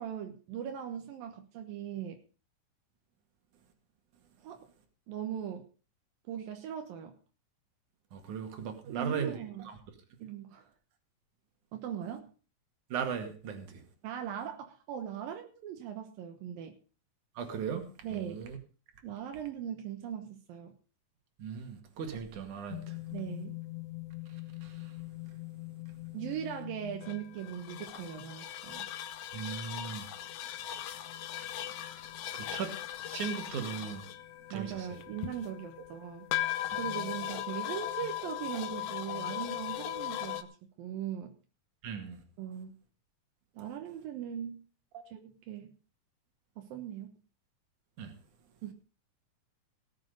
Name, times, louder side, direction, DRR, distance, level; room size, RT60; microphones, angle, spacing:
voice 1, 0.0-2.2 4.4-4.7 5.1-5.7 6.3-7.2 8.8-9.7 10.2-10.7 11.7-12.3 14.0-16.8 18.0-18.4 19.0-20.7 23.1-23.6 26.1-28.9 34.5-36.3 36.7-40.5 40.8-41.3 42.4-42.7 43.5-44.7 45.1-45.7 46.6-47.1 48.6-48.7, right 9 dB, 85° right, 2.9 m, -39 dB
voice 2, 8.1-9.4 9.7-9.8 12.9-13.8 17.4-17.8 18.1-18.6 21.4-22.9 24.6-24.8 29.3-30.1 32.3-32.7 33.1-34.0 34.5-35.0 41.8-42.2 44.9-45.0 48.0-48.1, right 7 dB, 60° right, 3.4 m, -37 dB
sound 1, 22.7-40.4, left 13 dB, 70° left, 2.1 m, -39 dB
18.0 x 7.6 x 5.3 m
omnidirectional pair, 4.0 m